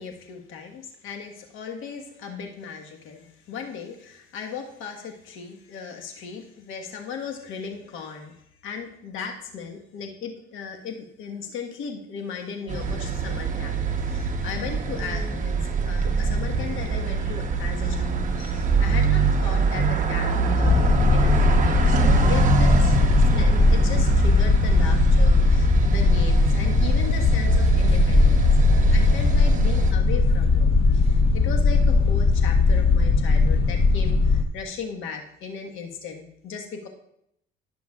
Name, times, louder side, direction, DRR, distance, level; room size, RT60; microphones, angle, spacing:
voice 1, 0.0-8.4 8.6-23.0 23.3-28.5 28.9-36.9, left 6 dB, 75° left, 2 dB, 1.4 m, -37 dB
sound 1, 12.7-29.9, right 4 dB, 40° right, 1.0 m, -24 dB
sound 2, 20.6-34.4, left 4 dB, 25° left, 0.6 m, -19 dB
16.0 x 6.1 x 2.4 m, 0.75 s
cardioid pair, 120°, 21 cm